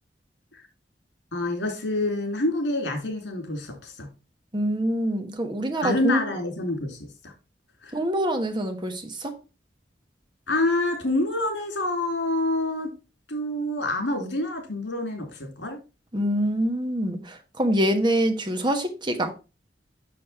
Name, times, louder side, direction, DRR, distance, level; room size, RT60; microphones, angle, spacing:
voice 1, 1.3-4.1 5.8-7.0 7.2-7.3 7.8-7.9 10.5-12.9 13.3-15.8, left 2 dB, 90° left, 2.8 m, -27 dB
voice 2, 4.5-6.2 7.9-9.3 16.1-19.3, right 1 dB, 25° right, 1.2 m, -25 dB
6.9 x 6.4 x 4.2 m
head